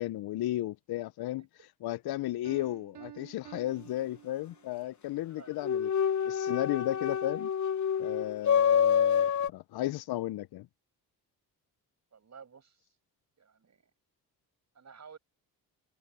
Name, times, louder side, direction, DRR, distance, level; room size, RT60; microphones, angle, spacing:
voice 1, 0.0-1.4 1.8-5.9 6.2-7.5 8.0-10.7, left 15 dB, 70° left, 0.6 m, -34 dB
Piano, 2.4-4.9, right 12 dB, 80° right, 3.0 m, -50 dB
voice 2, 5.3-5.6 12.1-12.9 13.4-13.9 14.7-15.2, right 6 dB, 45° right, 7.5 m, -53 dB
sound 1, 5.6-9.5, left 8 dB, 45° left, 0.9 m, -27 dB
cardioid pair, 85°, 39 cm